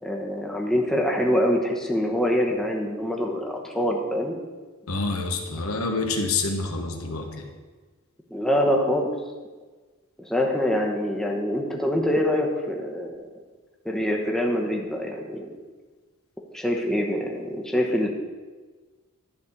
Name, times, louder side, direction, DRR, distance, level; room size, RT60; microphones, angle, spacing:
voice 1, 0.0-4.4 8.3-9.1 10.2-13.2 13.8-15.5 16.5-18.1, equal, ahead, 0 dB, 1.0 m, -25 dB
voice 2, 4.9-7.5, left 3 dB, 75° left, 4 dB, 1.3 m, -27 dB
11.0 x 4.2 x 7.2 m, 1.4 s
head